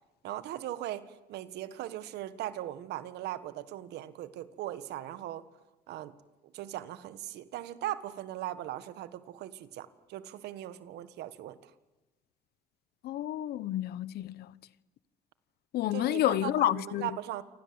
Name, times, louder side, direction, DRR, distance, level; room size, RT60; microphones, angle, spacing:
voice 1, 0.2-5.4 5.9-6.1 6.5-11.7 15.9-17.4, right 13 dB, 80° right, 1.7 m, -39 dB
voice 2, 13.0-14.5 15.7-17.2, left 13 dB, 70° left, 1.0 m, -30 dB
28.5 x 25.0 x 7.9 m
cardioid pair, 110°, 17 cm